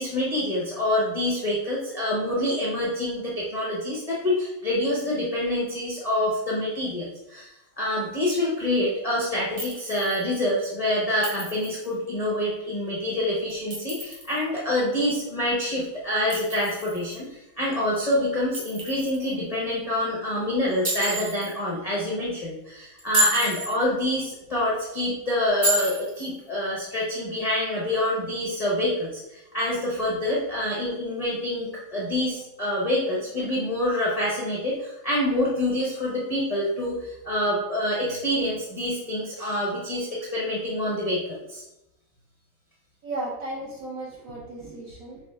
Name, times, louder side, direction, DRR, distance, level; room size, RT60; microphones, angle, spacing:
voice 1, 0.0-7.5 7.8-41.6, left 1 dB, 45° left, -6 dB, 0.5 m, -26 dB
Chink clink, 9.6-10.2 11.2-11.9 13.5-14.4 16.3-17.2 18.5-19.3 20.8-21.5 23.0-23.8 25.6-26.3, right 1 dB, 25° right, 1.0 m, -29 dB
voice 2, 43.0-45.2, right 2 dB, 60° right, -4 dB, 1.0 m, -35 dB
4.2 x 3.3 x 3.4 m, 0.91 s
omnidirectional pair, 2.0 m